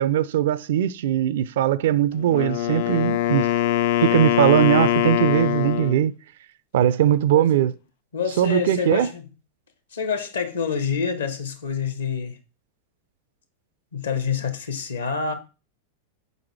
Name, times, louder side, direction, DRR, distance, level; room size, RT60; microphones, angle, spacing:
voice 1, 0.0-3.5 4.0-6.1 6.7-7.7 8.4-9.1, right 11 dB, 55° right, 0.4 m, -20 dB
Wind instrument woodwind instrument, 2.2-6.1, left 12 dB, 50° left, 0.3 m, -22 dB
voice 2, 8.1-9.2 9.9-12.4 13.9-15.3, left 6 dB, 70° left, 1.1 m, -27 dB
5.5 x 4.8 x 4.6 m
figure-of-eight pair, 90°, 0 cm